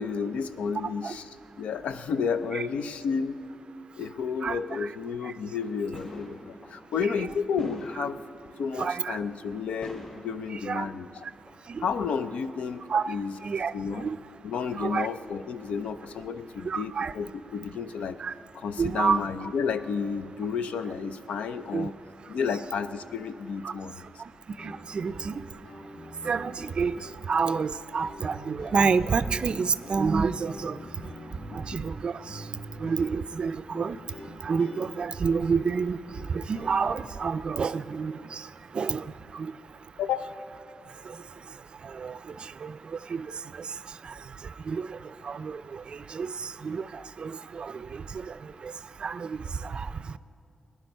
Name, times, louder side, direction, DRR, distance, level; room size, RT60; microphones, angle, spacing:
voice 1, 0.0-3.4 4.0-8.2 8.6-11.2 11.8-13.4 13.7-14.1 14.4-18.2 18.5-21.9 22.3-24.1 31.5-31.6 40.0-40.3, left 6 dB, 90° left, 11 dB, 0.5 m, -31 dB
sound 1, 5.6-6.9 7.2-7.3 7.5-8.4 9.0-9.3 9.8-10.9 11.5-12.0, left 1 dB, 50° left, 3.6 m, -46 dB
voice 2, 8.8-9.2 10.7-10.9 11.7-11.8 12.9-13.1 13.4-14.2 14.8-15.1 16.6-17.1 18.2-18.3 18.8-19.2 21.7-21.9 23.6-23.7 24.6-25.4 26.2-27.0 27.3-30.8 31.5-32.4 32.8-34.0 34.4-36.0 36.3-38.5 38.7-39.1 39.3-39.5 41.1-41.2 41.8-42.8 43.1-43.3 43.5-43.7 44.0-44.1 44.7-45.0 45.2-48.4 48.6-48.7 49.0-50.2, right 5 dB, 50° right, 15 dB, 0.4 m, -29 dB
sound 2, 24.5-36.8, equal, 70° left, 2.8 m, -45 dB
18.5 x 11.0 x 5.3 m, 2.7 s
cardioid pair, 95°, 2 cm